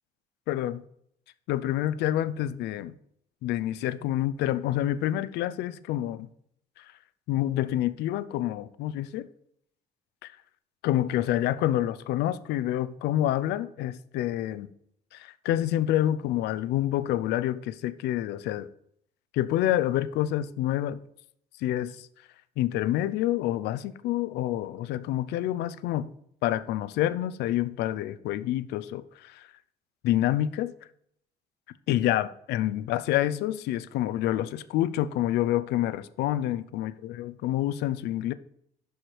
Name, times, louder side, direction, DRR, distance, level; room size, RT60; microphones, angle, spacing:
voice 1, 0.5-0.8 1.5-2.9 3.4-6.3 6.8-6.9 7.3-9.3 10.2-10.3 10.8-14.7 15.1-18.7 19.3-21.0 21.6-22.1 22.6-26.1 26.4-29.5 30.0-30.7 31.9-38.3, left 13 dB, 85° left, 0.5 m, -28 dB
11.5 x 4.8 x 3.2 m
cardioid pair, 110°, 17 cm